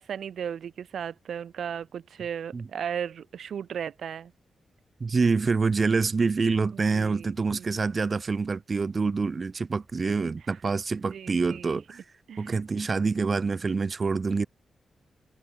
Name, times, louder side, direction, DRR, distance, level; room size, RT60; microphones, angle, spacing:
voice 1, 0.0-4.3 6.8-7.8 11.1-11.8 12.3-12.6, right 8 dB, 70° right, 1.3 m, -36 dB
voice 2, 5.0-12.0 12.4-14.5, right 4 dB, 35° right, 0.3 m, -26 dB
cardioid pair, 100°, 0 cm